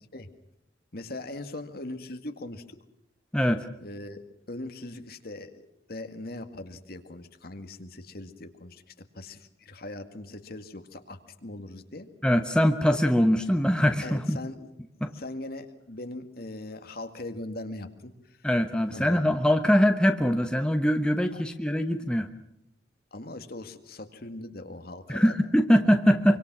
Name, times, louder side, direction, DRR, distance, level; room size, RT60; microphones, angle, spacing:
voice 1, 0.9-2.8 3.8-4.2 4.5-8.8 9.2-12.1 14.0-14.7 15.1-18.1 18.9-19.3 23.1-25.4, left 2 dB, 50° left, 7 dB, 2.0 m, -40 dB
voice 2, 3.3-3.7 12.2-14.4 15.0-15.1 18.4-22.3 25.1-26.4, equal, 5° left, 6 dB, 1.1 m, -22 dB
25.5 x 25.0 x 6.1 m, 0.79 s
head